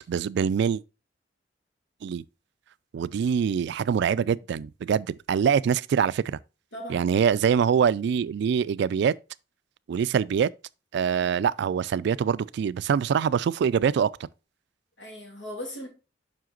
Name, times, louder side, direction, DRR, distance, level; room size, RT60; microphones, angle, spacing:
voice 1, 0.1-0.8 2.0-2.2 2.9-6.4 6.9-9.2 9.9-10.5 10.9-14.1, right 7 dB, 65° right, 0.3 m, -24 dB
voice 2, 6.7-7.1 15.0-15.9, equal, 75° left, 2.6 m, -38 dB
7.6 x 5.8 x 2.4 m
head